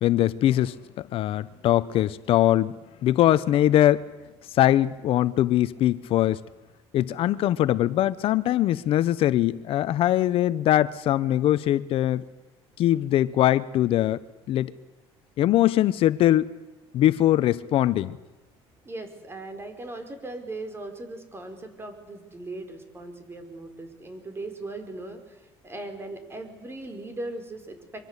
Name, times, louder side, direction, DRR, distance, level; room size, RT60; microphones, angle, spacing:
voice 1, 0.0-0.7 1.1-2.8 3.0-4.0 4.5-6.4 6.9-12.2 12.8-14.2 14.5-14.7 15.4-16.5 16.9-18.2, left 13 dB, 65° left, 0.9 m, -22 dB
voice 2, 18.8-28.0, right 2 dB, 25° right, 5.1 m, -38 dB
24.0 x 24.0 x 8.3 m
cardioid pair, 105°, 10 cm